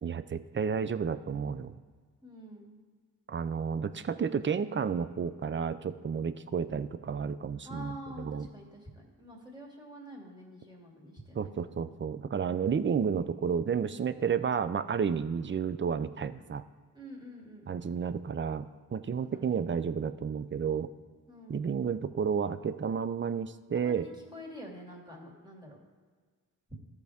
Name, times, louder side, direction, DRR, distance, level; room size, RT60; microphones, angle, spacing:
voice 1, 0.0-1.7 3.3-8.5 11.3-16.6 17.7-20.9 21.5-24.1, right 6 dB, 30° right, 13 dB, 0.4 m, -31 dB
voice 2, 2.2-2.7 7.6-11.7 16.9-17.8 19.2-19.5 21.3-21.6 23.7-25.8, equal, 10° right, -3 dB, 2.3 m, -47 dB
14.0 x 4.8 x 3.5 m, 1.5 s
cardioid pair, 60°, 37 cm